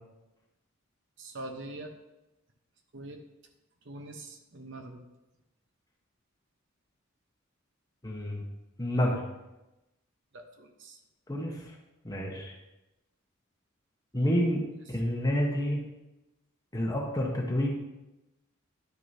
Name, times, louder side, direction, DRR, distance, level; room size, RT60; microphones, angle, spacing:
voice 1, 1.2-1.9 2.9-3.2 3.8-5.0 10.3-11.0, right 2 dB, 60° right, 4 dB, 1.0 m, -43 dB
voice 2, 8.0-8.4 8.8-9.2 11.3-11.6 12.0-12.5 14.1-14.6 14.9-15.8 16.7-17.7, equal, 20° left, 0 dB, 1.1 m, -28 dB
10.5 x 6.4 x 2.8 m, 0.98 s
head